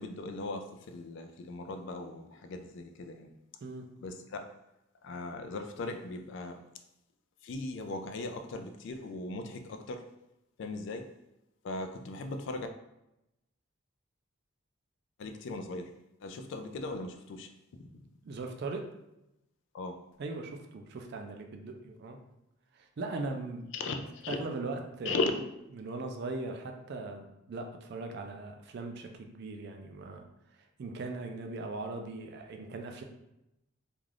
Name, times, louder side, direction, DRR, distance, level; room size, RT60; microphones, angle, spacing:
voice 1, 0.0-3.3 4.0-4.4 5.0-6.6 7.4-10.0 10.6-11.1 11.6-12.7 15.2-15.9 16.2-18.0 19.7-19.9 23.7-24.4 25.0-25.7, left 3 dB, 55° left, 7 dB, 0.3 m, -38 dB
voice 2, 18.3-18.8 20.2-22.2 22.7-23.7 24.3-25.2 25.7-30.2 30.8-33.0, right 3 dB, 50° right, 4 dB, 0.3 m, -39 dB
2.4 x 2.3 x 3.2 m, 0.88 s
head